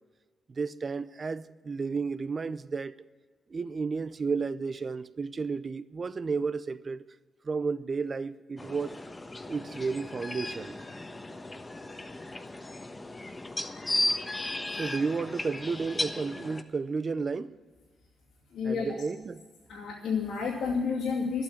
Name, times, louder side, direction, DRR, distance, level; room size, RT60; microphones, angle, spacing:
voice 1, 0.5-3.0 3.5-7.0 7.4-8.9 9.5-10.8 14.8-17.5 18.6-19.5, right 4 dB, 45° right, 0.6 m, -32 dB
sound 1, 8.6-16.6, left 2 dB, 25° left, 1.2 m, -35 dB
voice 2, 18.5-18.9 19.7-21.4, left 5 dB, 75° left, 2.5 m, -30 dB
12.0 x 8.8 x 9.6 m
supercardioid pair, 50°, 0 cm